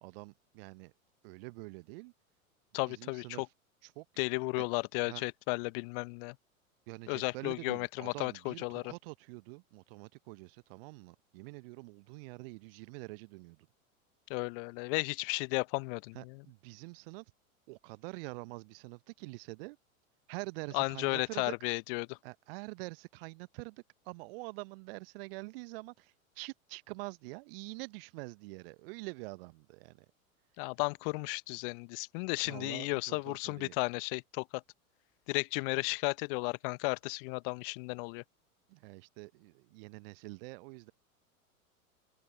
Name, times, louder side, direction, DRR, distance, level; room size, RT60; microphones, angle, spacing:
voice 1, 0.0-0.9 1.2-2.1 2.9-3.4 3.8-4.0 4.6-4.7 5.0-5.2 6.9-13.6 16.1-17.2 17.7-19.8 20.3-21.5 22.2-30.0 32.4-33.7 38.7-40.9, right 25 dB, 40° right, 1.0 m, -46 dB
voice 2, 2.7-3.5 4.2-6.3 7.1-8.9 14.3-16.4 20.7-22.2 30.6-34.6 35.3-38.2, left 32 dB, 40° left, 1.0 m, -34 dB
figure-of-eight pair, 95°, 43 cm